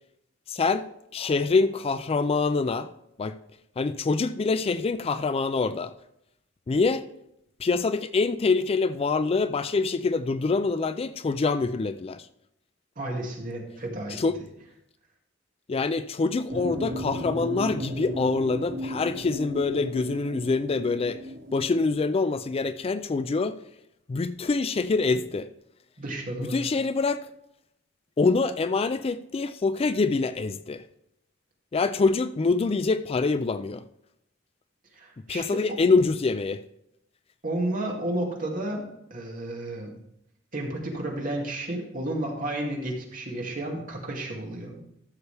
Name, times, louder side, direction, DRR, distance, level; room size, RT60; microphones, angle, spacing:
voice 1, 0.5-0.8 1.1-2.9 3.2-3.3 3.8-5.9 6.7-7.0 7.6-12.3 14.1-14.4 15.7-21.2 21.5-23.6 24.1-25.5 26.4-27.3 28.2-30.8 31.7-33.8 35.3-36.6, left 4 dB, 30° left, 12 dB, 0.4 m, -25 dB
voice 2, 13.0-14.4 26.0-26.6 34.9-35.6 37.4-38.8 39.1-39.9 40.5-44.8, right 1 dB, 45° right, -1 dB, 2.3 m, -32 dB
sound 1, 16.5-22.0, equal, 65° right, 2.2 m, -35 dB
14.0 x 6.8 x 3.4 m, 0.78 s
head